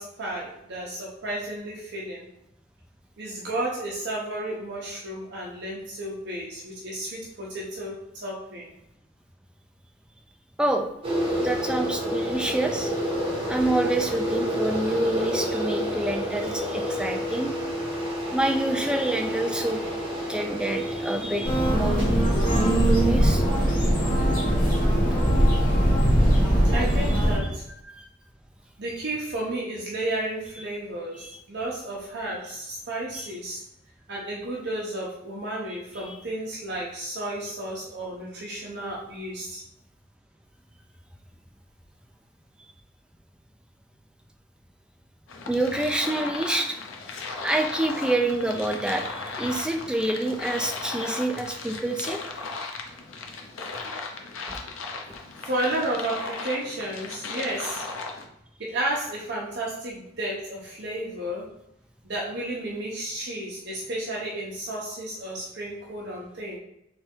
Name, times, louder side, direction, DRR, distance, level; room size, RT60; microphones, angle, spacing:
voice 1, 0.0-2.3 3.2-8.7 26.5-27.7 28.8-33.6 34.1-39.6 55.4-57.8 58.6-61.5 62.0-66.6, right 1 dB, 55° right, -4 dB, 0.9 m, -32 dB
voice 2, 10.6-10.9 11.4-12.9 13.5-17.5 18.3-19.8 20.3-22.1 22.5-23.4 28.0-28.1 31.2-31.3 36.0-36.1 45.5-46.8 47.1-52.2 54.5-54.6, right 1 dB, 5° right, 3 dB, 0.4 m, -27 dB
sound 1, 11.0-27.2, equal, 25° right, 1.4 m, -30 dB
sound 2, 21.4-27.4, equal, 40° left, 1.4 m, -21 dB
sound 3, 45.3-58.3, left 4 dB, 75° left, 0.7 m, -36 dB
3.5 x 3.4 x 4.4 m, 0.81 s
head